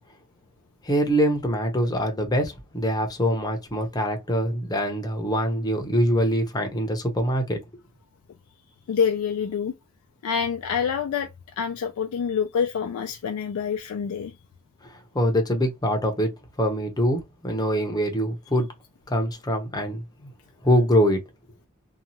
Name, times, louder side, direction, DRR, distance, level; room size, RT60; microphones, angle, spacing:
voice 1, 0.8-7.6 14.8-16.3 16.6-18.7 19.1-20.3 20.6-21.2, equal, 20° left, 0.7 m, -24 dB
voice 2, 8.9-9.7 10.2-11.3 11.6-14.3, left 7 dB, 85° left, 0.3 m, -26 dB
2.8 x 2.3 x 2.7 m
head